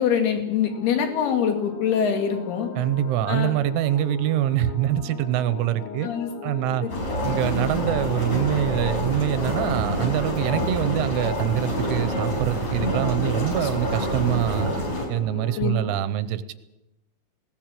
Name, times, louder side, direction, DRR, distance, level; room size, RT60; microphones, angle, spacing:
voice 1, 0.0-2.7 3.3-3.5 6.0-6.3 13.6-13.7 15.6-15.7, left 7 dB, 55° left, 5 dB, 3.9 m, -24 dB
sound 1, 0.6-16.0, left 8 dB, 80° left, 4.8 m, -39 dB
voice 2, 2.8-6.1 6.4-6.9 7.2-14.7 15.1-16.5, right 12 dB, 80° right, 13 dB, 3.1 m, -24 dB
sound 2, 6.9-15.1, equal, 35° left, 6.1 m, -27 dB
20.0 x 18.0 x 7.5 m, 0.95 s
omnidirectional pair, 5.8 m